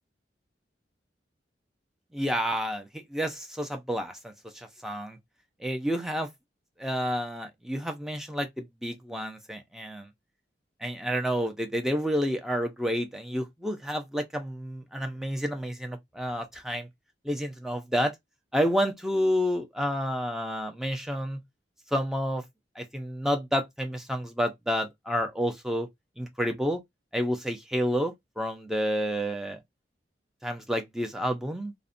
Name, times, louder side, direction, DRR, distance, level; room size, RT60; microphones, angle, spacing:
voice 1, 2.1-5.2 5.6-6.3 6.8-10.1 10.8-16.9 17.2-18.1 18.5-21.4 21.9-22.4 22.8-25.9 26.2-26.8 27.1-29.6 30.4-31.7, equal, 5° right, 0.5 m, -30 dB
2.6 x 2.1 x 2.5 m
head